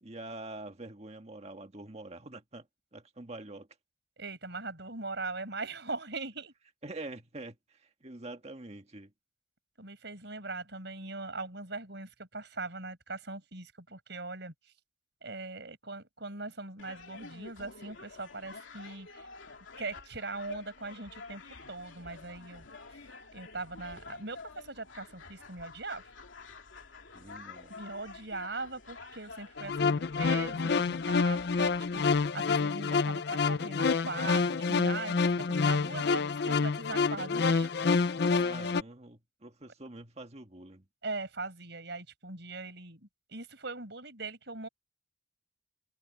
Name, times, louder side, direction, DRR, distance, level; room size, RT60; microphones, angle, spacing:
voice 1, 0.0-2.7 2.9-3.7 6.8-9.1 27.1-27.7 38.4-40.8, right 2 dB, 35° right, 1.7 m, -45 dB
voice 2, 4.2-6.5 9.8-14.5 15.2-19.3 19.8-21.4 21.7-22.7 23.3-26.0 27.7-37.8 41.0-44.7, right 3 dB, 65° right, 5.3 m, -40 dB
sound 1, 16.8-32.3, left 4 dB, 80° left, 2.7 m, -49 dB
sound 2, 29.6-38.8, left 4 dB, 60° left, 0.5 m, -28 dB
head